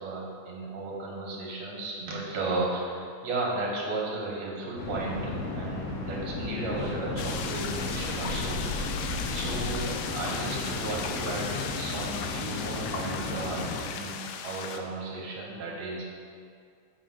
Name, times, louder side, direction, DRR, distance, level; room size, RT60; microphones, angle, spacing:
voice 1, 0.0-9.0 9.3-16.1, right 2 dB, 65° right, -3 dB, 2.3 m, -34 dB
sound 1, 4.8-13.8, left 2 dB, 65° left, 2.0 m, -34 dB
sound 2, 7.2-14.8, left 7 dB, 90° left, 2.1 m, -37 dB
6.7 x 5.8 x 5.8 m, 2.2 s
omnidirectional pair, 3.6 m